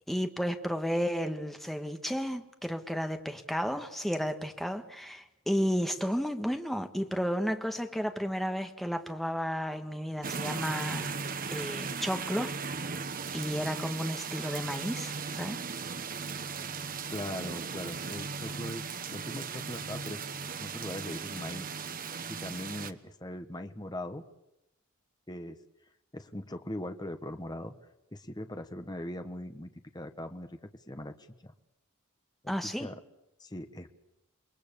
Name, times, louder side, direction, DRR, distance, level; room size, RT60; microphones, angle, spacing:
voice 1, 0.1-11.2 11.5-12.6 13.3-15.6 32.5-32.9, equal, ahead, 6 dB, 1.6 m, -32 dB
sound 1, 10.2-22.9, right 5 dB, 40° right, 1.1 m, -37 dB
voice 2, 17.1-20.2 20.6-24.2 25.3-25.6 26.1-27.7 28.1-31.5 32.4-33.0 33.4-33.9, left 1 dB, 20° left, 8 dB, 1.3 m, -40 dB
28.5 x 22.0 x 6.9 m, 0.87 s
head